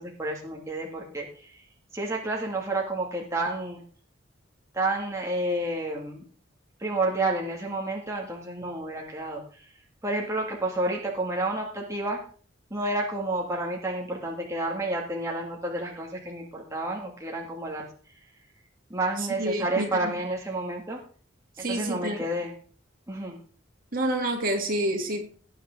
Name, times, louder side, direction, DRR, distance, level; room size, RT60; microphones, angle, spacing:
voice 1, 0.0-1.5 1.9-3.8 4.7-6.2 6.8-9.4 10.0-12.2 12.7-17.9 18.9-21.0 21.7-22.5 23.1-23.4, right 2 dB, 15° right, -2 dB, 2.2 m, -30 dB
voice 2, 19.4-20.1 21.6-22.2 23.9-25.2, right 1 dB, 50° right, 2 dB, 3.0 m, -28 dB
19.0 x 8.8 x 3.8 m, 0.43 s
head